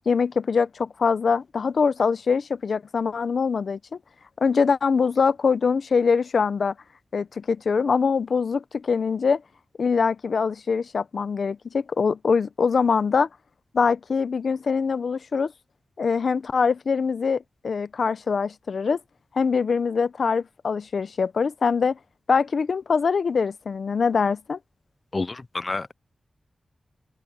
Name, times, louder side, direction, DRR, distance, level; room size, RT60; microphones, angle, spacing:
voice 1, 0.0-4.0 4.4-6.7 7.1-9.4 9.8-13.3 13.7-15.5 16.0-19.0 19.3-22.0 22.3-24.6, left 5 dB, 70° left, 0.7 m, -23 dB
voice 2, 25.1-25.9, left 3 dB, 35° left, 0.4 m, -29 dB
open air
wide cardioid pair, 115°, 0 cm